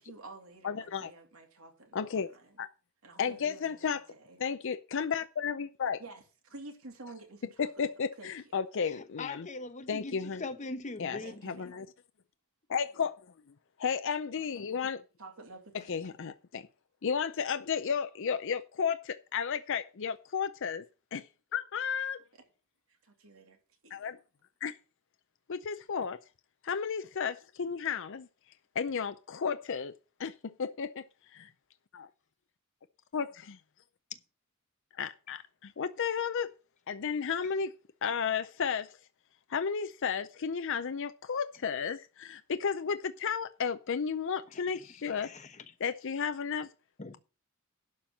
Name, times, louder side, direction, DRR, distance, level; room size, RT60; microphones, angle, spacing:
voice 1, 0.0-2.6 3.0-3.8 4.1-4.4 6.0-7.7 8.2-8.3 11.2-11.8 15.2-16.3 22.9-23.6 23.8-24.1, right 2 dB, 80° right, 2.8 m, -50 dB
voice 2, 0.6-1.1 1.9-2.3 2.6-2.7 3.2-4.0 4.4-6.0 7.6-9.5 9.9-10.4 11.0-11.9 12.7-13.1 13.8-15.0 15.9-16.6 17.0-20.8 21.1-21.2 21.5-22.2 23.9-24.2 24.6-24.7 25.5-26.2 26.7-28.2 28.8-29.9 30.2-30.3 30.6-31.0 31.3-31.5 31.9-32.1 33.1-33.6 35.0-36.5 36.9-37.7 38.0-38.9 39.5-45.3 45.8-46.7, left 6 dB, 65° left, 0.6 m, -33 dB
voice 3, 8.8-11.4 44.5-45.6 47.0-47.2, left 3 dB, 35° left, 1.0 m, -42 dB
12.0 x 4.4 x 7.2 m
head